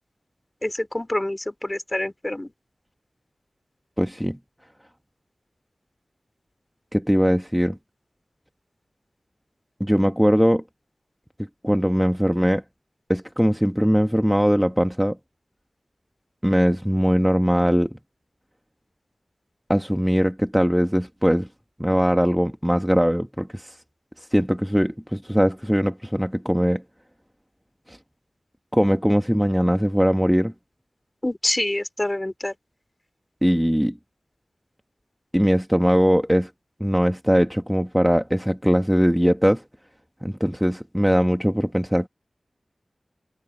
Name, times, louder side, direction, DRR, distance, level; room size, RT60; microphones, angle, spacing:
voice 1, 0.6-2.5 31.2-32.5, left 1 dB, 25° left, 3.6 m, -26 dB
voice 2, 4.0-4.4 6.9-7.8 9.8-10.6 11.6-12.6 13.1-15.2 16.4-18.0 19.7-21.5 21.8-23.7 24.3-26.8 27.9-28.0 28.7-30.5 33.4-34.0 35.3-36.5 36.8-39.6 40.2-42.1, equal, 5° right, 1.5 m, -20 dB
wide cardioid pair, 50°, 0 cm